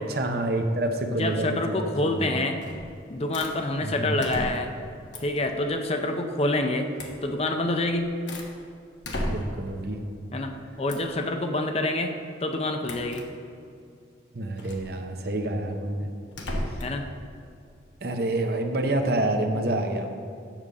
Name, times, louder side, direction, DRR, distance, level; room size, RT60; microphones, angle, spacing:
voice 1, 0.0-2.4 3.8-4.2 9.2-10.0 14.3-16.1 16.7-16.8 18.0-20.1, right 1 dB, 55° right, 5 dB, 0.8 m, -28 dB
voice 2, 1.0-2.6 3.1-4.7 5.2-6.9 7.2-8.2 10.3-13.3 16.8-17.1, left 2 dB, 30° left, 5 dB, 0.6 m, -27 dB
sound 1, 2.6-2.9 3.3-3.6 4.2-4.8 5.1-5.4 7.0-7.2 7.8-8.5 9.0-9.7 10.9-11.2 12.8-13.3 14.6-14.9 16.3-17.0, left 1 dB, 70° left, 1.2 m, -34 dB
7.4 x 6.8 x 6.4 m, 2.5 s
head